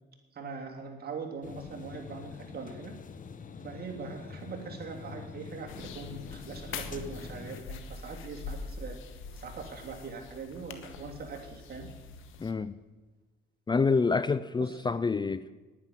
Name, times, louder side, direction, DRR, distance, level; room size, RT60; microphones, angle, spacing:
voice 1, 0.3-2.9 3.6-9.0 9.3-11.9 14.6-14.9, right 4 dB, 50° right, 1 dB, 3.1 m, -41 dB
sound 1, 1.4-7.6, left 5 dB, 40° left, 1.1 m, -45 dB
sound 2, 5.7-12.5, left 4 dB, 85° left, 1.3 m, -44 dB
voice 2, 12.4-12.7 13.7-15.5, left 4 dB, 20° left, 15 dB, 0.5 m, -27 dB
10.5 x 9.8 x 7.4 m, 1.3 s
cardioid pair, 90°, 20 cm